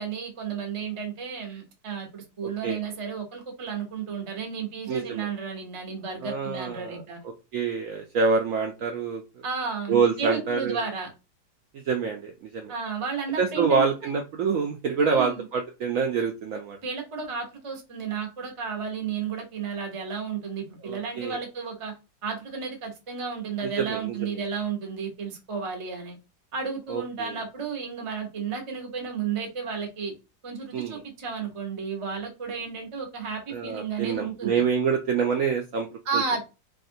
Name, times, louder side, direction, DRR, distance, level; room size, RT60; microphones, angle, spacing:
voice 1, 0.0-7.2 9.4-11.1 12.7-14.1 15.0-15.4 16.8-21.9 22.2-26.2 26.5-30.1 30.4-34.6 36.0-36.4, right 6 dB, 40° right, 0.4 m, -32 dB
voice 2, 4.9-5.3 6.2-7.0 7.5-9.2 9.9-10.8 11.9-12.7 13.4-16.8 20.8-21.4 23.6-24.2 26.9-27.3 30.7-31.0 33.5-35.9 36.1-36.2, right 5 dB, 90° right, 0.7 m, -26 dB
3.5 x 2.4 x 2.6 m
omnidirectional pair, 2.0 m